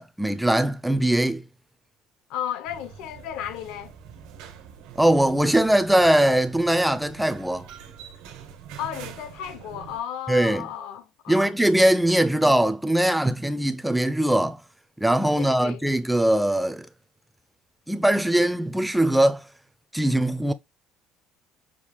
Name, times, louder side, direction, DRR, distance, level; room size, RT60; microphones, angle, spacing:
voice 1, 0.0-1.4 5.0-7.7 10.3-10.7 11.3-14.6 15.0-16.9 17.9-19.4 19.9-20.5, right 1 dB, 5° right, 0.4 m, -21 dB
voice 2, 2.3-3.9 8.8-11.5 15.4-15.8, left 10 dB, 75° left, 0.8 m, -34 dB
sound 1, 2.6-10.0, right 8 dB, 90° right, 1.3 m, -44 dB
6.1 x 2.3 x 3.5 m
cardioid pair, 155°, 0 cm